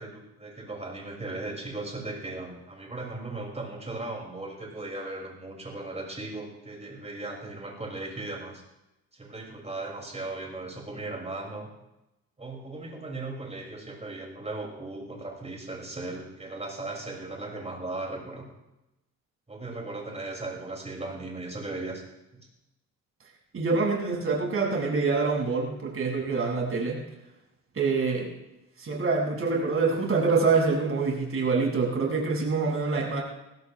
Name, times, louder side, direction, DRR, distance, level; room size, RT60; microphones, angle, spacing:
voice 1, 0.0-8.6 9.1-11.7 12.4-18.5 19.5-22.0 22.3-22.5, right 2 dB, 20° right, 0 dB, 6.5 m, -37 dB
voice 2, 23.5-27.0 27.8-28.3 28.8-33.2, right 4 dB, 45° right, -2 dB, 7.0 m, -25 dB
22.5 x 16.0 x 3.6 m, 0.93 s
cardioid pair, 90°, 30 cm